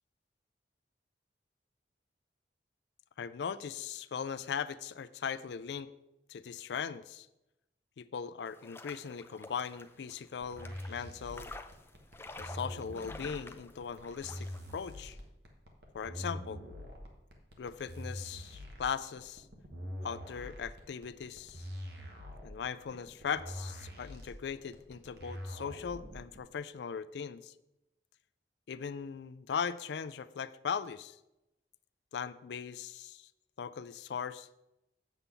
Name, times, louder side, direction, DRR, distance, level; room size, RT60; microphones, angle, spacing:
voice 1, 3.2-5.9 6.3-7.3 8.0-11.5 12.4-15.2 15.9-16.7 17.6-19.5 20.0-21.7 22.4-27.5 28.7-31.2 32.1-33.3 33.6-34.5, left 6 dB, 75° left, 15 dB, 0.4 m, -39 dB
sound 1, 8.5-14.8, left 2 dB, 15° left, 0.4 m, -50 dB
sound 2, 10.4-26.4, equal, 70° right, 1.5 m, -44 dB
8.0 x 7.1 x 3.8 m, 0.92 s
head